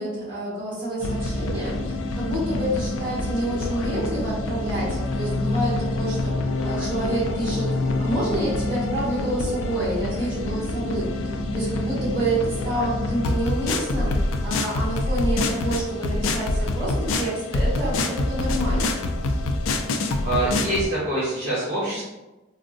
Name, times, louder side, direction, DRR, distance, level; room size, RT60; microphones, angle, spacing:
voice 1, 0.0-6.4 6.6-14.2 14.4-19.0, right 1 dB, 25° right, -10 dB, 1.2 m, -28 dB
sound 1, 1.0-20.9, left 2 dB, 80° left, 0.3 m, -26 dB
voice 2, 20.2-22.0, right 1 dB, 45° right, -11 dB, 1.0 m, -25 dB
3.4 x 2.0 x 2.5 m, 1.1 s
head